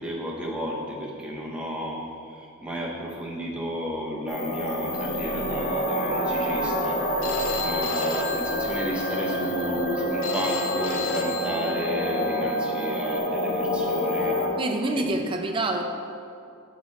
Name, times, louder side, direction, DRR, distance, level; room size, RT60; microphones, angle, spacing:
voice 1, 0.0-2.0 2.3-7.0 7.3-14.4 14.9-15.1, equal, 5° right, -3 dB, 0.8 m, -32 dB
sound 1, 4.3-14.5, equal, 40° left, 1.1 m, -27 dB
Telephone, 7.2-13.2, left 5 dB, 60° left, 0.5 m, -35 dB
voice 2, 14.6-15.8, right 2 dB, 25° right, 3 dB, 0.5 m, -26 dB
5.9 x 4.1 x 4.9 m, 2.4 s
head